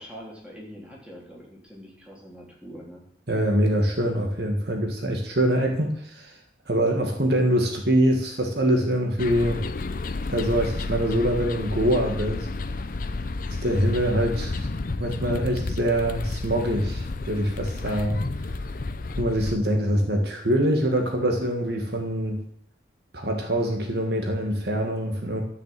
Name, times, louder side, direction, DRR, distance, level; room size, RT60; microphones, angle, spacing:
voice 1, 0.0-3.0 17.9-18.1, equal, 5° right, -3 dB, 3.4 m, -43 dB
voice 2, 3.3-6.4 6.7-9.6 10.3-12.5 13.6-14.7 15.0-18.2 19.2-22.4 23.1-25.4, equal, 60° right, 3 dB, 1.8 m, -24 dB
sound 1, 9.2-19.6, left 3 dB, 50° left, 0.6 m, -31 dB
12.0 x 6.5 x 7.6 m, 0.67 s
head